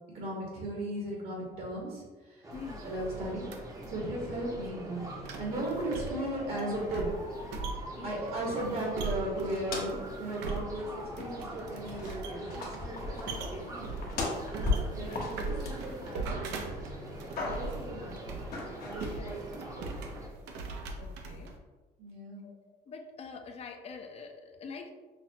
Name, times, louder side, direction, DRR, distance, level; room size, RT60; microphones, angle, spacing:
voice 1, 0.1-2.5 2.8-3.5 3.9-5.0 5.4-7.1 8.0-12.6 12.8-13.2 13.5-13.9 14.5-16.6 17.5-18.3 18.8-19.9 22.0-22.5, right 1 dB, 65° right, -4 dB, 1.2 m, -36 dB
sound 1, 2.4-20.3, right 1 dB, 20° right, 0.6 m, -44 dB
voice 2, 2.5-2.9 8.0-8.3 10.6-10.7 13.3-13.7 15.1-15.4 19.1-19.4 21.0-21.5 22.4-22.6 22.9-24.9, left 5 dB, 40° left, 5 dB, 0.5 m, -46 dB
sound 2, 2.5-21.6, right 3 dB, 90° right, 0.5 m, -41 dB
sound 3, 9.4-10.1 10.5-10.6 11.2-11.6 11.8-16.5 16.9-17.9 18.5-19.2, left 3 dB, 65° left, 0.9 m, -37 dB
5.7 x 2.0 x 2.8 m, 1.3 s
cardioid pair, 110°, 17 cm